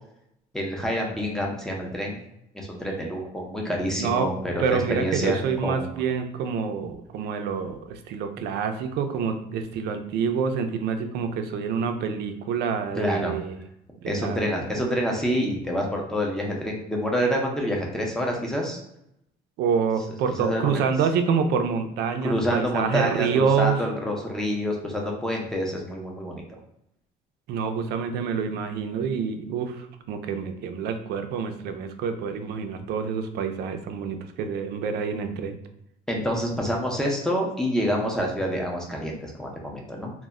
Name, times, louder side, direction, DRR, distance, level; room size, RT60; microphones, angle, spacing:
voice 1, 0.5-2.2 2.5-5.9 8.4-8.5 13.0-13.4 14.1-18.8 20.4-20.9 22.2-26.4 36.1-40.1, equal, 5° left, -1 dB, 0.5 m, -27 dB
voice 2, 4.0-4.3 4.6-13.6 14.0-14.4 14.8-14.9 19.6-23.8 27.5-35.5, right 6 dB, 70° right, 7 dB, 0.4 m, -27 dB
2.1 x 2.0 x 3.5 m, 0.79 s
cardioid pair, 130°, 18 cm